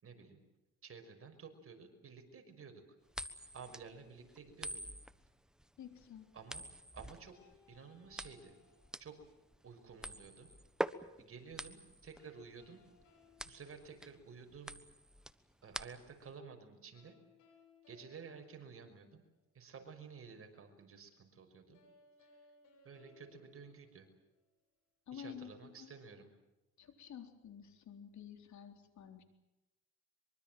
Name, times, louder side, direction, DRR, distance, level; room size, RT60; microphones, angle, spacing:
voice 1, 0.0-0.4 0.8-2.9 3.5-4.8 6.3-6.7 6.9-7.4 7.7-8.5 9.0-9.2 9.6-10.5 11.2-12.8 13.4-14.7 15.6-17.2 17.9-19.2 19.5-21.8 22.2-22.3 22.8-24.1 25.1-26.3, right 5 dB, 50° right, 5 dB, 5.8 m, -53 dB
sound 1, 3.1-16.3, equal, ahead, 1.2 m, -46 dB
voice 2, 5.8-6.3 25.1-25.9 26.8-29.2, left 8 dB, 65° left, 6 dB, 3.9 m, -51 dB
sound 2, 7.3-9.5 12.1-14.6 16.9-19.5 21.7-24.6, left 4 dB, 90° left, 6.9 m, -67 dB
24.0 x 24.0 x 7.8 m, 0.99 s
cardioid pair, 90°, 30 cm